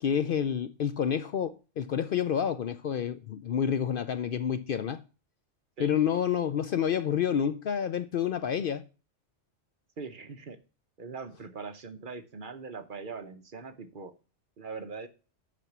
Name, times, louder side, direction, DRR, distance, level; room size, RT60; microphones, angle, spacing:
voice 1, 0.0-5.0 5.8-8.9, left 8 dB, 60° left, 0.6 m, -29 dB
voice 2, 10.0-10.6 11.0-14.1 14.6-15.1, right 4 dB, 50° right, 0.9 m, -41 dB
8.4 x 5.3 x 5.9 m
omnidirectional pair, 1.2 m